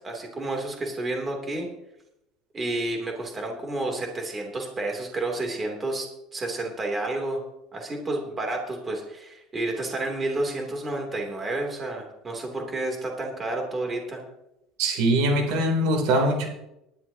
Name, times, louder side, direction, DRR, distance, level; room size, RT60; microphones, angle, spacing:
voice 1, 0.0-1.7 2.5-7.4 7.7-14.2, right 2 dB, 20° right, 1 dB, 3.0 m, -30 dB
voice 2, 14.8-16.5, right 1 dB, 70° right, 2 dB, 3.1 m, -22 dB
19.0 x 12.0 x 2.9 m, 0.88 s
cardioid pair, 130°, 0 cm